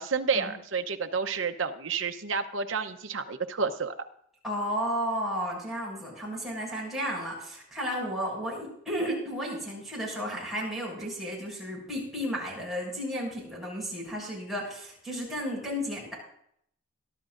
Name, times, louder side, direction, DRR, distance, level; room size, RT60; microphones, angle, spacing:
voice 1, 0.0-3.9, right 5 dB, 75° right, 6 dB, 0.9 m, -30 dB
voice 2, 4.4-16.1, equal, ahead, -6 dB, 6.7 m, -33 dB
23.0 x 12.0 x 2.6 m, 0.69 s
head